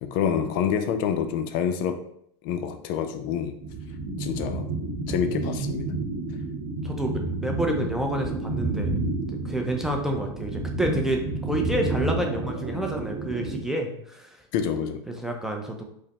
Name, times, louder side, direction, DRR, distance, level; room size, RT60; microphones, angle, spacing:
voice 1, 0.0-2.0 2.4-3.5 4.2-4.7 5.1-5.9 7.8-7.9 14.5-15.0, left 8 dB, 55° left, 7 dB, 0.4 m, -27 dB
sound 1, 3.6-13.6, right 3 dB, 70° right, 0.9 m, -30 dB
voice 2, 6.8-9.0 9.3-14.4 15.1-15.8, right 1 dB, 5° right, 2 dB, 0.4 m, -29 dB
5.0 x 2.0 x 2.9 m, 0.70 s
supercardioid pair, 130°, 14 cm